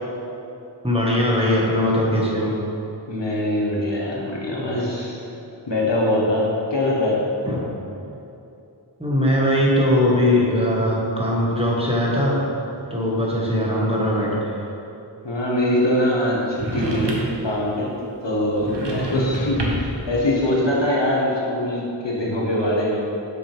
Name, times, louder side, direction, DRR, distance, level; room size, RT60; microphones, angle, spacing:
voice 1, 0.8-2.5 7.4-7.6 9.0-12.4 12.9-14.5, left 1 dB, 15° right, -5 dB, 1.7 m, -20 dB
voice 2, 3.1-5.2 5.7-7.2 13.4-13.7 15.2-17.9 18.2-23.0, left 1 dB, 75° left, -4 dB, 1.4 m, -23 dB
sound 1, 16.5-17.5 18.6-20.0, right 2 dB, 70° right, 1.1 m, -27 dB
7.9 x 6.5 x 3.5 m, 2.8 s
wide cardioid pair, 40°, 43 cm